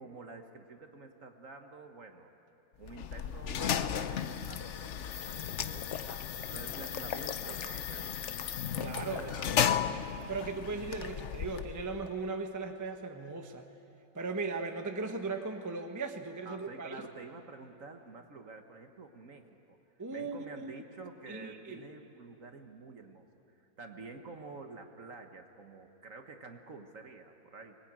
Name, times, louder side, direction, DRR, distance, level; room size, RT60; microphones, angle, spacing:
voice 1, 0.0-2.3 2.8-9.8 16.4-19.8 20.1-23.3 23.8-27.8, right 3 dB, 45° right, 5 dB, 1.5 m, -49 dB
sound 1, 2.8-12.1, left 9 dB, 70° left, 0.6 m, -35 dB
voice 2, 8.8-9.3 10.3-13.7 14.1-17.0 20.0-20.7 21.3-21.9, right 3 dB, 10° right, 5 dB, 0.9 m, -38 dB
24.0 x 21.0 x 8.9 m, 2.7 s
omnidirectional pair, 2.1 m